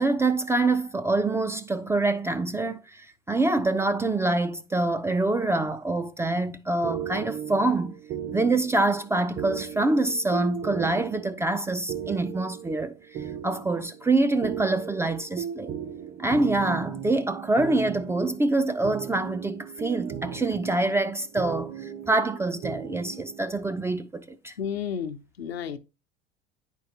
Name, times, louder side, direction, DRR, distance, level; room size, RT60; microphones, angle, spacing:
voice 1, 0.0-8.0 8.3-15.7 16.2-24.5, right 2 dB, 10° right, 0.3 m, -25 dB
sound 1, 6.8-23.6, right 9 dB, 35° right, 0.8 m, -37 dB
voice 2, 24.6-25.8, left 7 dB, 80° left, 0.7 m, -32 dB
9.4 x 4.6 x 2.7 m
figure-of-eight pair, 75°, 30 cm